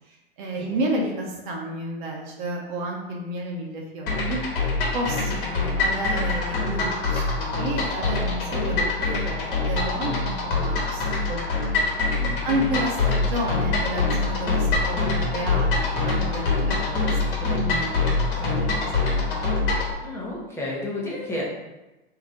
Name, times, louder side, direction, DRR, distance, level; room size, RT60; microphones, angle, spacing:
voice 1, 0.1-4.4 4.9-11.4 12.4-18.1 18.4-19.4, right 1 dB, 50° right, -1 dB, 0.8 m, -31 dB
sound 1, 4.1-19.9, left 3 dB, 60° left, 1.2 m, -24 dB
voice 2, 12.2-12.5 20.0-21.4, left 1 dB, 10° left, -5 dB, 0.9 m, -32 dB
3.2 x 2.8 x 3.7 m, 1.0 s
hypercardioid pair, 100°, 31 cm